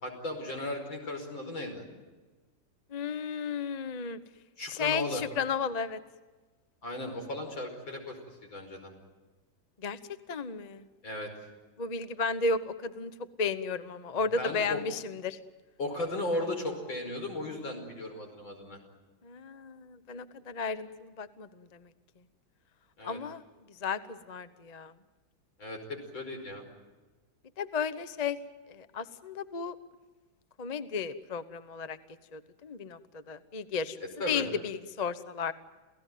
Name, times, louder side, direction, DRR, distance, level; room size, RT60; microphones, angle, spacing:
voice 1, 0.0-1.9 4.6-5.2 6.8-8.9 11.0-11.3 14.1-14.8 15.8-18.8 23.0-23.2 25.6-26.7 34.2-34.5, left 1 dB, 75° left, 3 dB, 5.9 m, -36 dB
voice 2, 2.9-4.2 4.7-6.0 9.8-10.0 10.3-10.9 11.8-13.1 13.4-15.4 19.2-21.9 23.0-23.4 23.7-24.9 27.6-28.4 28.7-29.7 30.6-32.0 32.3-34.0 34.3-35.5, left 5 dB, 35° left, 13 dB, 0.7 m, -34 dB
29.0 x 17.0 x 9.3 m, 1.3 s
omnidirectional pair, 2.1 m